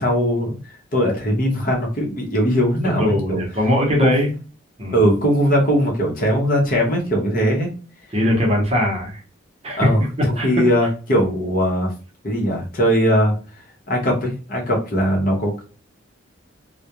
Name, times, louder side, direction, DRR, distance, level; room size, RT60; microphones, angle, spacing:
voice 1, 0.0-3.4 4.0-4.2 4.9-7.7 9.8-11.9 12.2-13.3 13.9-15.6, equal, 45° left, -1 dB, 0.8 m, -20 dB
voice 2, 3.0-4.3 4.8-5.0 8.1-9.2 9.6-9.9 10.2-10.5, left 1 dB, 30° right, -1 dB, 0.8 m, -20 dB
2.3 x 2.1 x 2.8 m, 0.35 s
head